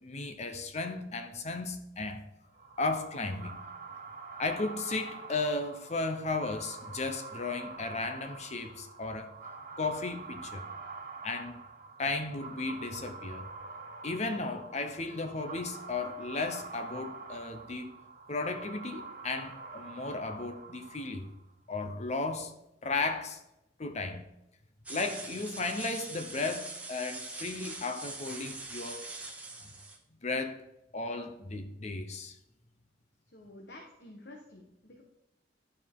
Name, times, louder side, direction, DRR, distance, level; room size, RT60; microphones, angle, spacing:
voice 1, 0.0-2.2 2.8-3.6 4.4-9.3 9.8-10.7 11.2-11.6 12.0-13.4 14.0-18.0 18.3-21.3 21.7-22.5 22.8-23.4 23.8-24.2 24.9-29.0 30.2-30.6 30.9-32.4, left 3 dB, 40° left, 0.8 m, -35 dB
sound 1, 2.5-21.4, right 4 dB, 50° right, 1.5 m, -46 dB
sound 2, 24.9-30.0, right 3 dB, 10° right, 1.2 m, -43 dB
voice 2, 33.3-35.0, left 1 dB, 65° left, 1.3 m, -50 dB
12.5 x 4.7 x 3.7 m
head